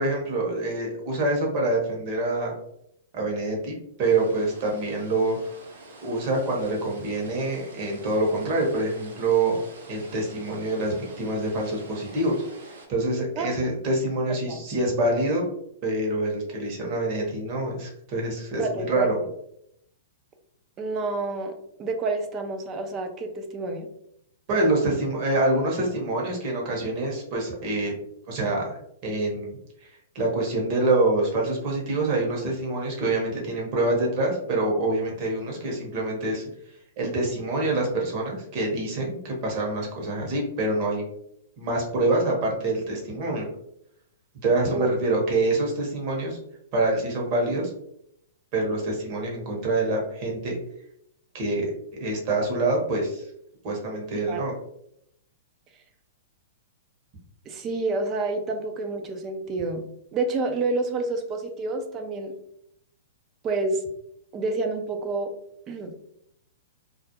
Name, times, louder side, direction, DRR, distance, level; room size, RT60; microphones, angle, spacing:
voice 1, 0.0-2.5 3.1-5.4 6.0-9.6 9.9-15.4 15.8-19.1 24.5-27.9 28.3-36.4 37.0-41.0 41.6-43.5 44.4-46.4 46.7-47.7 48.5-50.6 51.3-51.7 51.9-53.3 53.6-54.5, right 2 dB, 45° right, -1 dB, 0.9 m, -26 dB
sound 1, 4.0-12.9, right 2 dB, 75° right, 0.7 m, -47 dB
voice 2, 18.6-19.1 20.8-21.5 21.8-23.9 44.7-44.9 54.3-54.5 57.5-59.8 60.1-62.3 63.4-63.8 64.3-65.3 65.7-65.9, right 3 dB, 30° right, 5 dB, 0.4 m, -28 dB
2.4 x 2.1 x 2.8 m, 0.74 s
hypercardioid pair, 130°, 0 cm